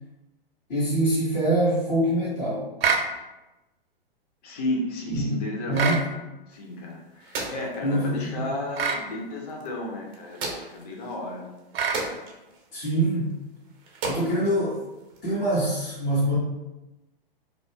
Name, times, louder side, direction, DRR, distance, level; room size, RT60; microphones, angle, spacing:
voice 1, 0.7-2.6 5.1-5.3 5.7-6.0 7.5-8.4 12.7-13.3 14.1-14.8 15.2-16.4, right 1 dB, 65° left, -10 dB, 1.3 m, -24 dB
sound 1, 2.8-3.1 5.7-6.1 8.8-9.0 11.7-12.0, right 5 dB, 75° right, 0.5 m, -24 dB
voice 2, 4.4-5.9 6.2-11.4, left 1 dB, 40° left, -1 dB, 0.7 m, -33 dB
sound 2, 6.5-15.5, right 3 dB, 15° right, 0.3 m, -39 dB
2.5 x 2.0 x 3.4 m, 1.0 s
hypercardioid pair, 120°, 30 cm